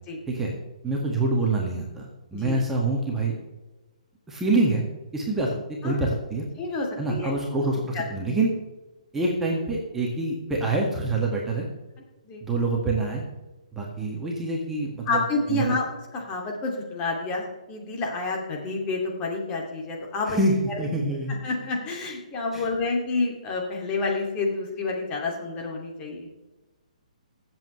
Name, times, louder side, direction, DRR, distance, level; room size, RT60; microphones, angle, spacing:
voice 1, 0.8-3.4 4.3-4.8 5.1-5.6 5.8-6.5 7.0-8.5 9.1-11.7 12.4-13.2 13.7-15.2 15.5-15.8 20.3-21.3 22.5-22.7, right 2 dB, 10° right, -2 dB, 1.8 m, -26 dB
voice 2, 6.6-7.3 7.9-8.0 12.2-12.4 15.1-15.8 16.1-20.4 21.4-26.3, left 3 dB, 25° left, 0 dB, 2.5 m, -29 dB
23.0 x 7.9 x 3.2 m, 1.1 s
figure-of-eight pair, 130°, 4 cm